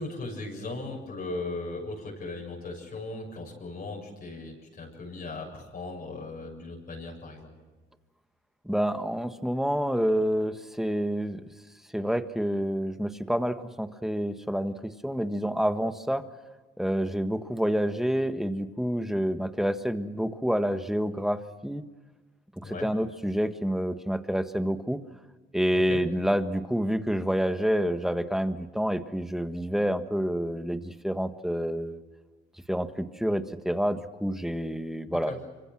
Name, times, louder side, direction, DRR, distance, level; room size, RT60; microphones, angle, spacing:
voice 1, 0.0-7.5 22.6-22.9 25.7-26.0 35.3-35.4, left 2 dB, 50° left, -1 dB, 7.5 m, -37 dB
voice 2, 8.6-11.4 11.9-16.3 16.8-21.8 22.6-25.0 25.5-32.0 32.7-35.3, equal, ahead, 9 dB, 1.6 m, -28 dB
26.0 x 25.0 x 6.3 m, 1.3 s
cardioid pair, 90°, 20 cm